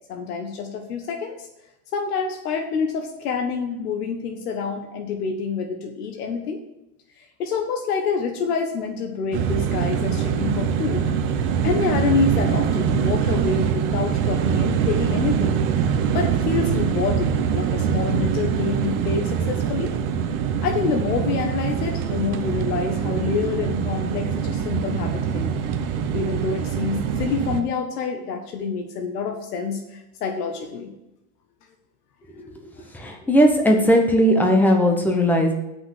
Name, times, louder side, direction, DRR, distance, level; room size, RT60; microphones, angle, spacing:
voice 1, 0.1-1.4 1.9-6.6 7.4-11.0 11.6-15.6 16.1-19.9 20.6-25.6 26.1-30.9, left 5 dB, 85° left, 3 dB, 1.5 m, -27 dB
sound 1, 9.3-27.6, right 7 dB, 25° right, 0.6 m, -23 dB
voice 2, 32.4-35.5, equal, 5° left, 3 dB, 0.9 m, -18 dB
7.9 x 6.1 x 6.4 m, 0.91 s
supercardioid pair, 160°, 45 cm